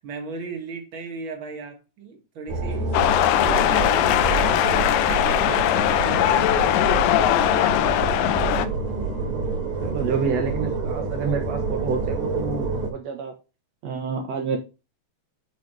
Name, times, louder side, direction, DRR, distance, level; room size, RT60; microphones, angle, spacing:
voice 1, 0.0-3.1 3.4-7.0 7.3-8.4, right 4 dB, 40° right, 2.0 m, -37 dB
sound 1, 2.5-12.9, right 4 dB, 55° right, 5.2 m, -28 dB
sound 2, 2.9-8.7, left 12 dB, 90° left, 2.9 m, -20 dB
voice 2, 9.2-13.3 13.8-14.6, right 5 dB, 75° right, 1.5 m, -29 dB
11.5 x 4.1 x 4.7 m
omnidirectional pair, 4.9 m